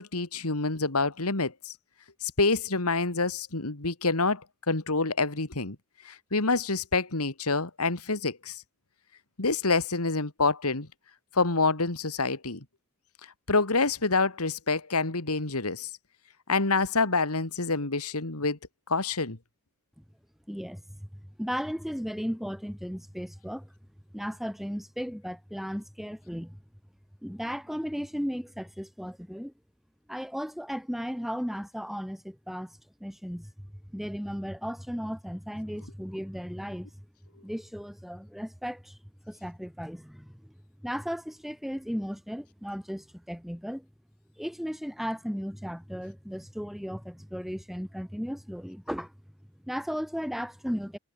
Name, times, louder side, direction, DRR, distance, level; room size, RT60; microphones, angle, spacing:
voice 1, 0.0-1.7 2.2-5.8 6.0-8.6 9.4-10.9 11.3-12.6 13.5-15.9 16.5-18.6 18.9-19.4, left 3 dB, 85° left, 2.6 m, -27 dB
voice 2, 20.5-21.1 21.4-23.7 24.1-26.6 27.2-29.5 30.1-37.1 37.4-39.0 39.3-40.5 40.8-43.9 44.4-49.1 49.6-51.0, equal, ahead, 6.9 m, -35 dB
head